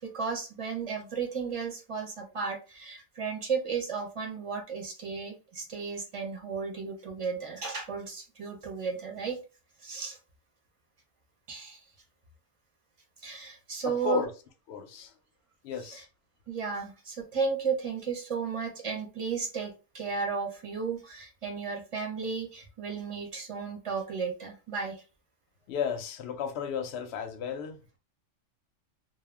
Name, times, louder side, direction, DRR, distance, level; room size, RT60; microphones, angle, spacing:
voice 1, 0.0-9.4 9.8-10.2 11.5-11.8 13.2-14.2 16.5-25.0, right 5 dB, 35° right, 0.5 m, -34 dB
voice 2, 13.8-14.3 14.7-15.2 15.6-16.1 25.7-28.0, left 7 dB, 65° left, 0.7 m, -34 dB
2.2 x 2.1 x 3.3 m
omnidirectional pair, 1.3 m